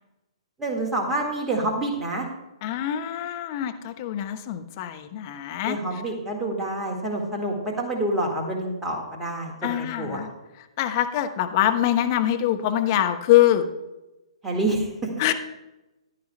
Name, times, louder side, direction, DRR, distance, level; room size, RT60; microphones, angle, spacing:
voice 1, 0.6-2.3 5.6-10.2 14.4-14.9, right 2 dB, 10° right, -1 dB, 1.7 m, -27 dB
voice 2, 2.6-5.8 9.6-10.3 10.8-13.7 15.2-15.3, left 12 dB, 35° left, 6 dB, 0.9 m, -23 dB
15.0 x 11.0 x 2.2 m, 1.0 s
figure-of-eight pair, 120°, 3 cm